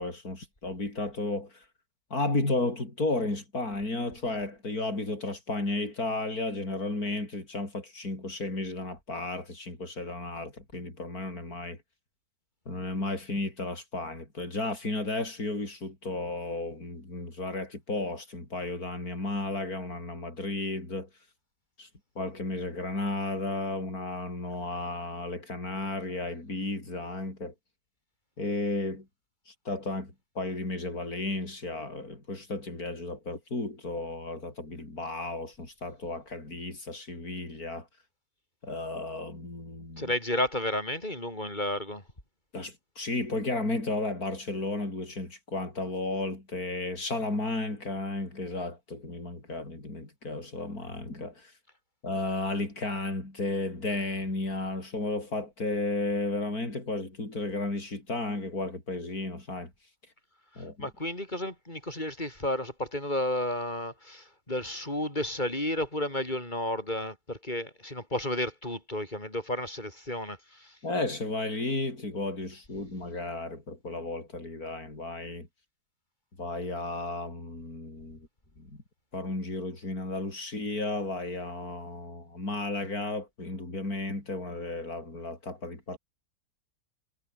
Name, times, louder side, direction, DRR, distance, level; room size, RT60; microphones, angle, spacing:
voice 1, 0.0-1.6 2.1-11.8 12.7-21.1 21.8-21.9 22.1-27.5 28.4-29.1 29.5-37.9 38.6-40.1 42.5-51.5 52.0-59.7 60.6-60.9 70.8-75.5 76.4-78.3 78.6-78.8 79.1-86.0, left 2 dB, 60° left, 6.8 m, -33 dB
voice 2, 40.0-42.0 60.6-70.8, left 1 dB, 25° left, 7.9 m, -32 dB
omnidirectional pair, 1.7 m